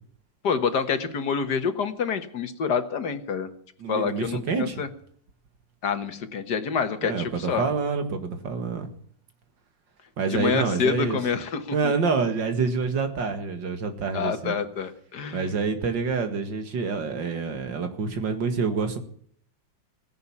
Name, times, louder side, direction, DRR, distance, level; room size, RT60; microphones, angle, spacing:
voice 1, 0.4-3.5 3.9-4.9 5.8-7.6 10.3-11.9 14.1-15.5, left 6 dB, 65° left, 9 dB, 1.9 m, -27 dB
voice 2, 3.8-4.8 7.0-8.9 10.2-11.2 11.7-14.6 15.3-19.0, right 5 dB, 85° right, 7 dB, 2.5 m, -27 dB
16.5 x 10.5 x 7.2 m, 0.62 s
omnidirectional pair, 1.9 m